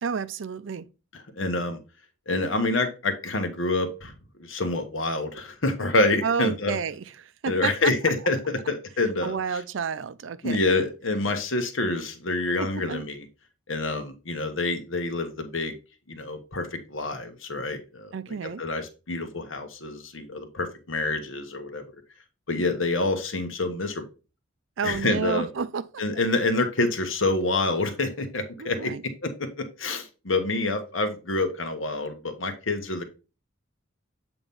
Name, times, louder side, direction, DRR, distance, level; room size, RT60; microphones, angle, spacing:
voice 1, 0.0-0.9 6.2-7.9 9.2-10.6 12.6-13.0 18.1-18.6 24.8-26.0 28.6-29.0, right 6 dB, 70° right, 0.5 m, -30 dB
voice 2, 1.4-1.8 2.3-4.1 4.4-6.8 7.5-9.4 10.4-13.2 13.7-15.7 16.1-18.1 18.6-21.8 22.5-24.0 24.8-25.5 26.0-28.9 29.2-33.0, left 2 dB, 85° left, 1.1 m, -27 dB
7.9 x 2.9 x 5.3 m
head